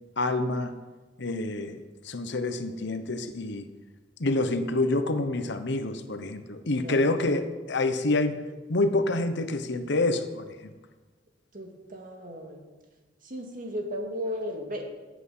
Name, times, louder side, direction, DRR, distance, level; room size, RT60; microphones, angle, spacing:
voice 1, 0.2-0.7 1.2-3.7 4.2-8.4 8.7-10.7, left 2 dB, 65° left, 9 dB, 1.0 m, -27 dB
voice 2, 6.8-7.2 11.5-12.6 13.2-14.9, equal, 45° right, 2 dB, 2.1 m, -35 dB
16.5 x 8.3 x 5.6 m, 1.2 s
head